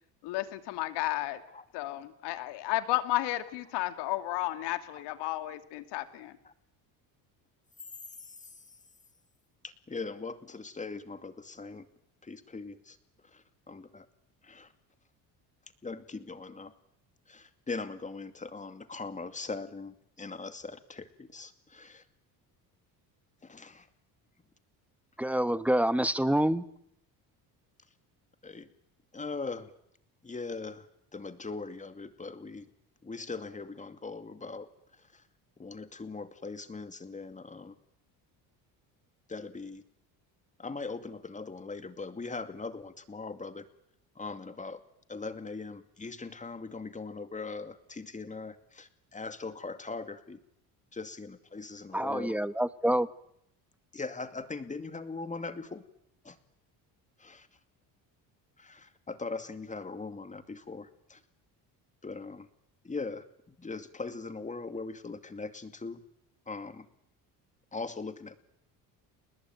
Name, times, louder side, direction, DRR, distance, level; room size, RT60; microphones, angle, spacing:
voice 1, 0.2-1.4 1.7-6.4, left 16 dB, 80° left, 10 dB, 2.5 m, -33 dB
voice 2, 8.2-8.6 9.6-11.9 12.2-13.0 13.2-14.1 14.4-14.7 15.8-16.7 17.3-22.0 23.4-23.9 28.4-28.7 29.1-29.7 30.2-30.9 31.1-32.7 33.0-34.7 34.9-35.2 35.6-37.7 39.3-39.8 40.6-43.7 44.2-44.8 45.1-50.4 50.9-52.4 53.9-55.8 56.2-56.4 57.2-57.5 58.6-61.2 62.0-62.5 62.8-66.0 66.5-66.9 67.7-68.4, left 4 dB, 20° left, 10 dB, 2.4 m, -40 dB
voice 3, 25.2-26.6 51.9-53.1, right 1 dB, 5° right, 14 dB, 1.2 m, -27 dB
30.0 x 20.5 x 9.1 m, 0.77 s
cardioid pair, 115°, 40 cm